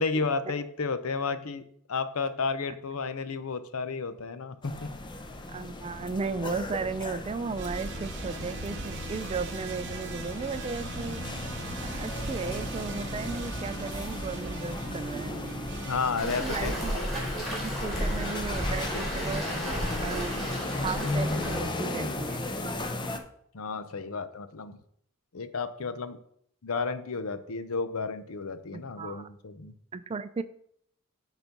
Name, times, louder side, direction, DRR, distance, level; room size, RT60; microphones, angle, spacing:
voice 1, 0.0-1.6 1.9-4.9 15.9-17.1 23.5-24.8 25.3-26.2 26.6-29.7, left 4 dB, 70° left, 12 dB, 0.7 m, -32 dB
sound 1, 4.6-23.2, left 2 dB, 20° left, 0.7 m, -36 dB
voice 2, 5.5-11.2 11.9-15.4 16.2-19.4 20.0-22.5 28.7-29.3 29.9-30.4, right 4 dB, 25° right, 13 dB, 0.3 m, -35 dB
sound 2, 7.6-16.2, right 3 dB, 55° right, 0.9 m, -39 dB
Waves surf, 16.2-21.6, equal, ahead, 3.1 m, -33 dB
9.0 x 4.1 x 5.2 m, 0.67 s
head